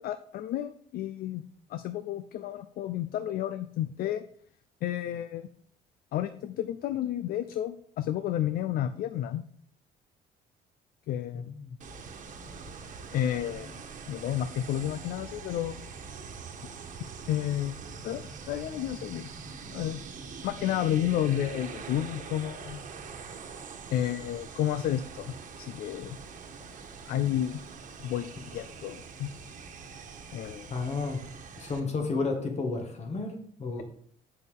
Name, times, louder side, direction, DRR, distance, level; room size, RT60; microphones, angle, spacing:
voice 1, 0.0-1.4 1.7-4.2 4.8-5.5 6.1-9.4 11.1-11.5 13.1-13.7 14.1-15.8 17.3-17.8 18.0-19.3 19.7-20.0 20.4-22.9 23.9-26.2 27.1-27.6 28.0-29.3 30.3-30.7, left 11 dB, 60° left, 11 dB, 0.5 m, -31 dB
voice 2, 11.3-11.8 30.7-31.2 31.6-33.8, left 3 dB, 40° left, 4 dB, 1.7 m, -32 dB
sound 1, 11.8-31.8, right 5 dB, 50° right, 1.3 m, -44 dB
8.4 x 6.6 x 3.5 m, 0.62 s
cardioid pair, 110°, 17 cm